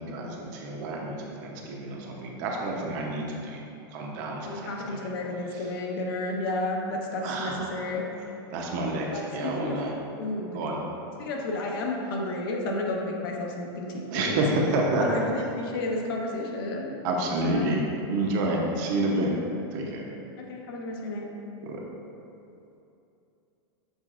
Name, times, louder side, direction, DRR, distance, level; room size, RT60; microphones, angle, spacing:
voice 1, 0.0-5.1 5.5-5.7 7.2-7.8 8.5-10.0 10.5-10.8 14.1-15.1 17.0-19.3 19.7-20.1 21.6-21.8, right 2 dB, 50° right, -1 dB, 0.7 m, -29 dB
voice 2, 4.4-8.0 9.1-9.8 10.2-10.6 11.2-14.4 15.0-16.9 17.4-17.7 19.8-19.9 20.5-21.3, left 2 dB, 65° left, 0 dB, 0.7 m, -32 dB
6.5 x 3.4 x 2.4 m, 2.8 s
supercardioid pair, 155°, 13 cm